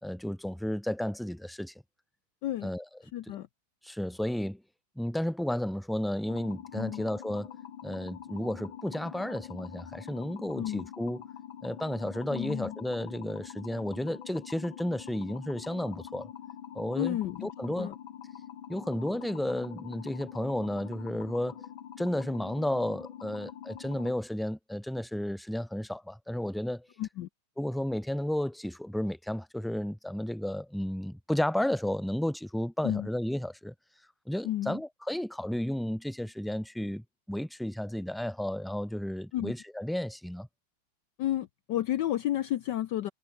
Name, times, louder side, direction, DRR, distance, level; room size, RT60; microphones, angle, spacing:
voice 1, 0.0-1.7 2.6-2.8 3.3-3.4 3.8-4.6 5.0-7.5 7.8-11.2 11.6-16.3 16.7-17.9 18.7-21.6 22.0-26.9 27.6-33.7 34.3-40.5, left 1 dB, ahead, 2.6 m, -33 dB
voice 2, 3.1-3.5 6.7-7.0 10.6-10.9 12.3-12.8 17.0-17.5 17.8-17.9 27.0-27.3 32.8-33.1 34.4-34.8 39.3-39.5 41.2-43.1, left 13 dB, 70° left, 1.3 m, -31 dB
sound 1, 6.3-24.1, left 10 dB, 85° left, 2.1 m, -45 dB
omnidirectional pair, 2.1 m